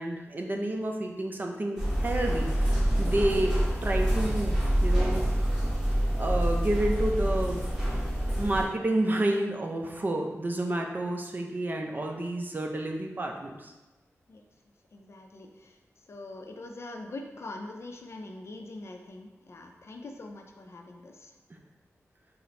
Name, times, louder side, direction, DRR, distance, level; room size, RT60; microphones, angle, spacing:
voice 1, 0.0-5.2 6.2-7.6 8.4-13.7 21.5-21.6, right 1 dB, 35° right, 2 dB, 0.5 m, -30 dB
sound 1, 1.8-8.6, equal, 10° right, 1.3 m, -26 dB
voice 2, 14.9-21.4, left 2 dB, 55° left, 3 dB, 0.4 m, -43 dB
3.8 x 2.0 x 4.3 m, 1.1 s
wide cardioid pair, 85°, 5 cm